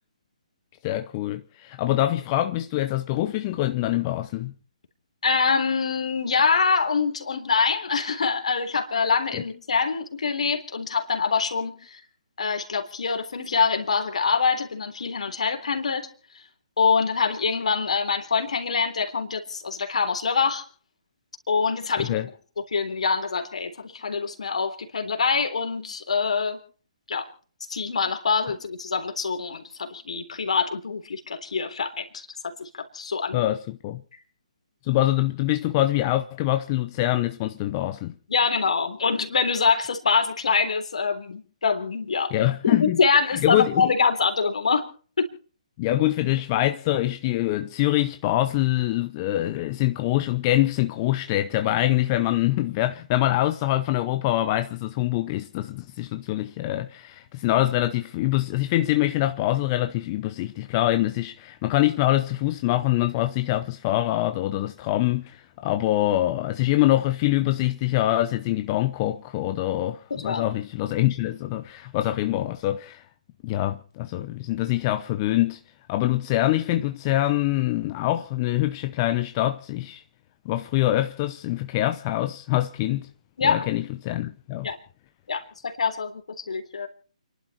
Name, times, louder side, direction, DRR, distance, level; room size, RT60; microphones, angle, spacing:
voice 1, 0.8-4.5 9.3-9.4 22.0-22.3 33.3-34.0 34.8-38.1 42.3-43.0 43.3-43.9 45.8-73.1 73.4-75.6 75.9-80.0 80.4-83.1 83.4-84.7, left 15 dB, 30° left, 0.8 m, -24 dB
voice 2, 5.2-12.0 12.4-16.1 16.8-20.6 21.5-22.2 22.7-26.6 27.1-27.3 27.7-33.4 38.3-42.3 42.6-44.9 45.2-45.3 70.1-70.5 83.4-83.7 84.6-84.8 85.3-86.9, left 5 dB, 65° left, 3.6 m, -25 dB
29.5 x 11.5 x 4.3 m
figure-of-eight pair, 140°, 4 cm